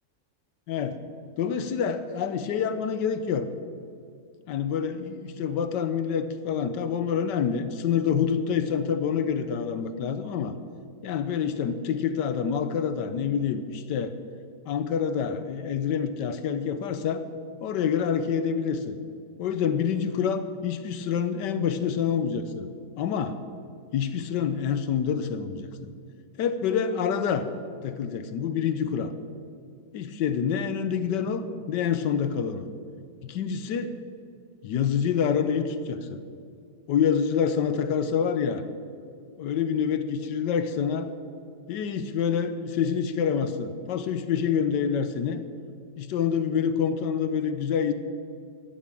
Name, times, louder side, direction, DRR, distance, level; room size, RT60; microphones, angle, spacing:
voice 1, 0.7-1.0 1.4-3.5 4.5-10.6 11.0-14.1 14.7-17.2 17.6-19.0 19.4-22.7 23.0-23.4 23.9-25.9 26.4-27.4 27.8-29.1 29.9-32.7 33.2-33.9 34.6-36.2 36.9-38.6 39.4-41.1 41.7-45.4 46.0-47.9, left 7 dB, 70° left, 11 dB, 1.3 m, -27 dB
13.5 x 7.2 x 7.6 m, 2.3 s
omnidirectional pair, 2.0 m